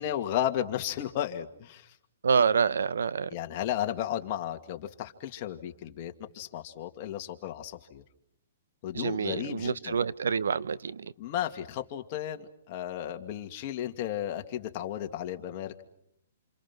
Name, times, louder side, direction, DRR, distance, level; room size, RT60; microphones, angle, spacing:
voice 1, 0.0-1.9 3.3-8.0 8.8-9.9 11.2-15.8, left 11 dB, 40° left, 5 dB, 2.2 m, -34 dB
voice 2, 2.2-3.3 8.9-11.1, right 6 dB, 85° right, 17 dB, 0.9 m, -27 dB
28.5 x 28.0 x 6.1 m, 0.74 s
hypercardioid pair, 145°, 0 cm